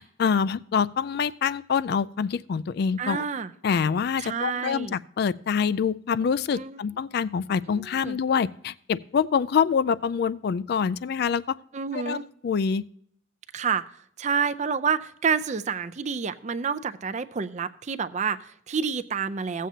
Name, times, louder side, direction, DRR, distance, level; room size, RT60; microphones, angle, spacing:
voice 1, 0.0-3.2 3.6-11.6 11.9-12.2 12.4-12.8, left 6 dB, 50° left, 18 dB, 0.3 m, -25 dB
voice 2, 3.0-3.5 4.2-4.9 6.6-6.8 7.8-8.2 11.7-12.2 13.5-13.8 14.2-19.7, right 6 dB, 35° right, 12 dB, 0.4 m, -28 dB
16.5 x 7.4 x 2.8 m, 0.66 s
head